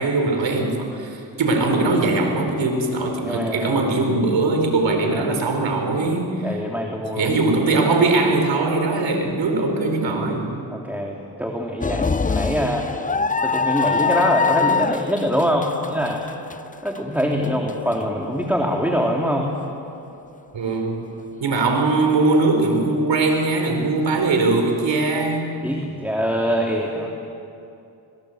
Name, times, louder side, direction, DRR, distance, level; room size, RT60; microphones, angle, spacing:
voice 1, 0.0-6.4 7.2-10.5 20.5-21.0 21.4-25.6, right 3 dB, 80° right, 4 dB, 4.4 m, -21 dB
voice 2, 3.3-4.0 5.1-5.3 6.4-7.3 10.7-12.9 13.4-16.3 16.8-19.5 25.6-27.1, equal, 5° right, 0 dB, 3.0 m, -24 dB
sound 1, 11.8-17.9 18.4-18.5 19.7-19.9, left 5 dB, 20° left, 0.6 m, -23 dB
25.5 x 23.0 x 7.9 m, 2.7 s
cardioid pair, 60°, 44 cm